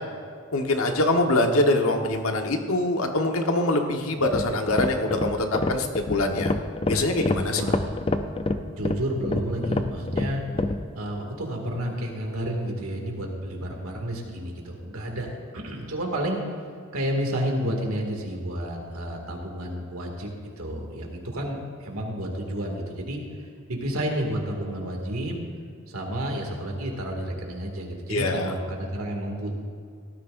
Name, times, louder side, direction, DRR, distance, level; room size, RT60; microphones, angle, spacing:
voice 1, 0.5-6.5 6.9-7.6 28.1-28.5, left 2 dB, 85° left, 3 dB, 1.3 m, -24 dB
sound 1, 4.2-10.8, left 2 dB, 25° left, 0.5 m, -27 dB
voice 2, 7.5-8.0 8.7-10.4 10.9-15.3 15.5-16.4 16.9-20.3 20.6-23.2 23.7-25.4 25.9-29.6, right 1 dB, 90° right, 1 dB, 2.3 m, -30 dB
17.5 x 13.5 x 2.6 m, 2.2 s
head